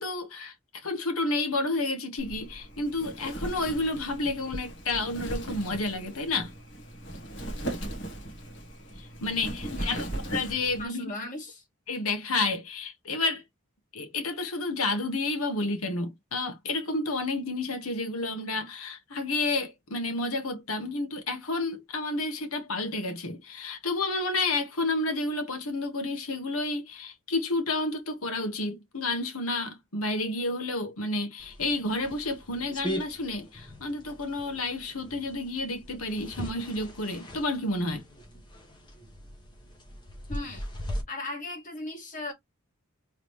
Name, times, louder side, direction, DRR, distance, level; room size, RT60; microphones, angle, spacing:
voice 1, 0.0-6.5 9.0-11.1 11.9-13.4 13.9-38.0, left 2 dB, 75° left, 1.4 m, -30 dB
Wind, 2.2-10.8, right 1 dB, 55° left, 1.5 m, -38 dB
voice 2, 9.4-10.1 10.8-11.6 40.3-40.7 41.1-42.3, left 2 dB, 35° left, 1.9 m, -38 dB
sound 1, 31.4-41.0, equal, 20° left, 1.2 m, -40 dB
3.7 x 3.3 x 3.1 m
head